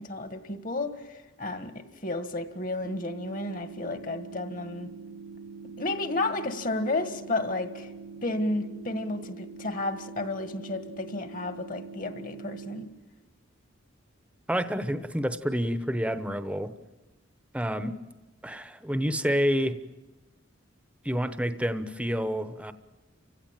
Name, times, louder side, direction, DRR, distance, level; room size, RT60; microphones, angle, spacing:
voice 1, 0.0-1.7 2.0-4.9 5.8-7.9 8.2-12.9, left 2 dB, 45° left, 9 dB, 1.8 m, -32 dB
sound 1, 2.8-12.8, right 4 dB, 80° right, 1.9 m, -44 dB
voice 2, 14.5-16.7 17.5-18.0 18.4-19.8 21.0-22.7, equal, 5° right, 11 dB, 0.9 m, -28 dB
30.0 x 16.5 x 9.1 m, 1.1 s
head